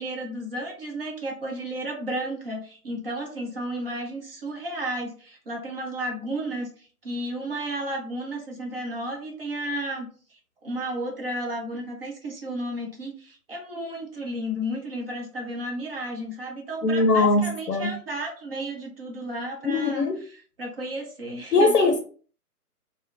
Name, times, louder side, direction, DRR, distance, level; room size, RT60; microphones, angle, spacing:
voice 1, 0.0-10.1 10.6-20.1 20.3-21.7, right 1 dB, 40° right, 0.7 m, -33 dB
voice 2, 16.8-17.9 19.6-20.2 21.5-22.0, left 3 dB, 85° left, 0.5 m, -21 dB
2.6 x 2.0 x 2.4 m
figure-of-eight pair, 140°, 46 cm